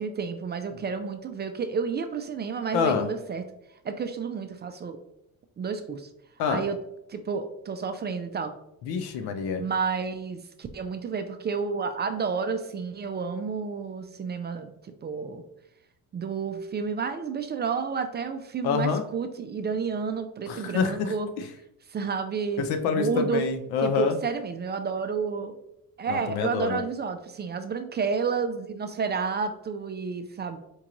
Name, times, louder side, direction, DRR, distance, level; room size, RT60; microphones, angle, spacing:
voice 1, 0.0-3.4 3.8-5.0 5.6-6.1 6.5-6.8 7.1-8.5 9.6-15.4 16.1-21.3 21.9-22.6 22.9-23.4 23.8-25.5 26.0-30.6, right 5 dB, 30° right, 8 dB, 0.4 m, -30 dB
voice 2, 2.7-3.1 6.4-6.6 8.8-9.6 18.6-19.0 20.5-21.0 22.6-24.2 26.1-26.8, left 6 dB, 80° left, 8 dB, 0.6 m, -26 dB
4.5 x 2.4 x 3.0 m, 0.82 s
cardioid pair, 90°, 37 cm